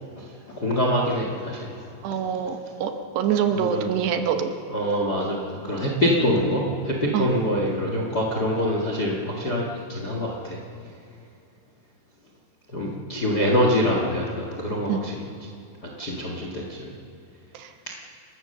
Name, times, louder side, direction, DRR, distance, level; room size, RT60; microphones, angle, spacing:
voice 1, 0.5-1.8 3.5-3.9 4.7-10.6 12.7-15.2 16.0-16.9, equal, 85° left, -1 dB, 0.8 m, -25 dB
voice 2, 2.0-4.5 7.1-7.3 14.9-15.0 17.6-17.7, right 8 dB, 70° right, 6 dB, 3.1 m, -25 dB
29.0 x 15.5 x 6.7 m, 2.6 s
omnidirectional pair, 5.4 m